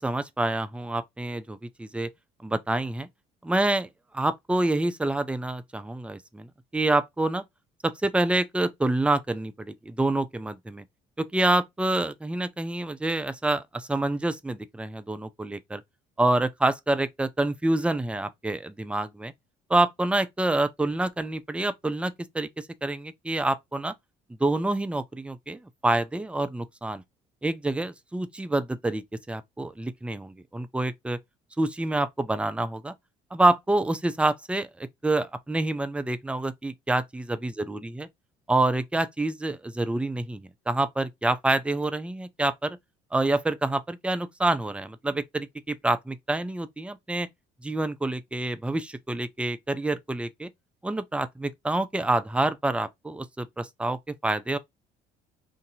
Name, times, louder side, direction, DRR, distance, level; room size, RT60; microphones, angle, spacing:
voice 1, 0.0-2.1 2.4-3.1 3.4-3.9 4.1-6.5 6.7-7.4 7.8-10.8 11.2-15.8 16.2-19.3 19.7-23.9 24.4-27.0 27.4-31.2 31.6-32.9 33.3-38.1 38.5-42.8 43.1-47.3 47.6-50.5 50.8-54.6, right 2 dB, 5° right, 0.5 m, -27 dB
2.7 x 2.6 x 4.0 m
hypercardioid pair, 65°, 20 cm